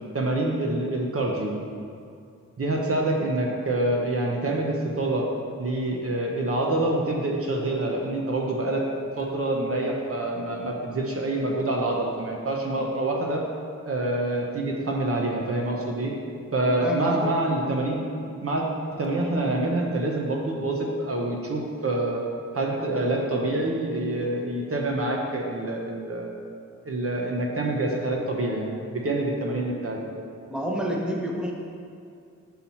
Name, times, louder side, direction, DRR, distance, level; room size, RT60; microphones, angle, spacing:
voice 1, 0.1-1.6 2.6-5.3 5.6-8.8 9.2-13.4 13.8-16.1 16.5-18.0 18.4-18.6 18.9-22.2 22.5-26.3 26.8-30.0, right 2 dB, 50° right, 0 dB, 0.8 m, -26 dB
voice 2, 16.7-17.5 30.5-31.5, equal, 5° right, -2 dB, 1.0 m, -29 dB
5.7 x 5.6 x 4.3 m, 2.4 s
wide cardioid pair, 85°, 30 cm